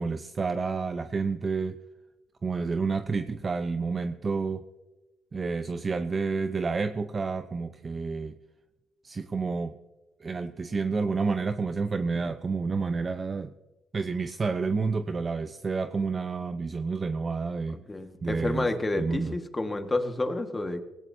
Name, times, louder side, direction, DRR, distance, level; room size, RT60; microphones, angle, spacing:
voice 1, 0.0-1.8 2.4-4.6 5.3-8.3 9.0-9.7 10.2-13.5 13.9-17.8 18.2-18.7 19.0-19.3, right 4 dB, 35° right, 8 dB, 0.7 m, -29 dB
voice 2, 17.9-20.8, left 2 dB, 20° left, 6 dB, 1.7 m, -29 dB
19.0 x 17.5 x 2.8 m, 1.1 s
cardioid pair, 90°, 0 cm